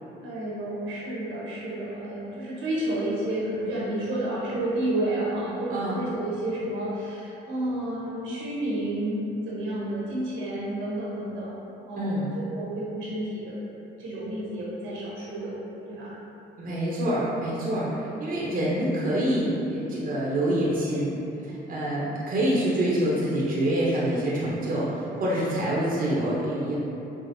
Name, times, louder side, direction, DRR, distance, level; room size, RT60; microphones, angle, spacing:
voice 1, 0.2-11.5 11.9-13.6 14.0-16.1, right 1 dB, 80° right, -7 dB, 1.0 m, -30 dB
voice 2, 12.0-12.3 16.6-21.1 21.4-26.7, right 1 dB, 45° right, -7 dB, 0.7 m, -26 dB
4.8 x 2.0 x 2.6 m, 3.0 s
cardioid pair, 90°, 20 cm